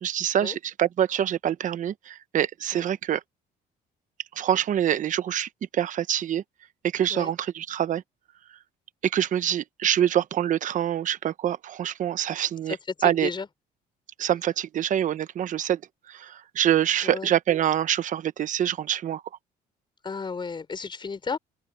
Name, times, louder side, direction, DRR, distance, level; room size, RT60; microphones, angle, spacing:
voice 1, 0.0-3.2 4.3-6.4 6.9-8.0 9.0-12.8 13.0-13.3 14.2-15.8 16.1-19.2, right 10 dB, 50° right, 0.9 m, -25 dB
voice 2, 12.7-13.5 17.0-17.3 20.0-21.4, left 5 dB, 30° left, 5.5 m, -33 dB
open air
cardioid pair, 110°, 17 cm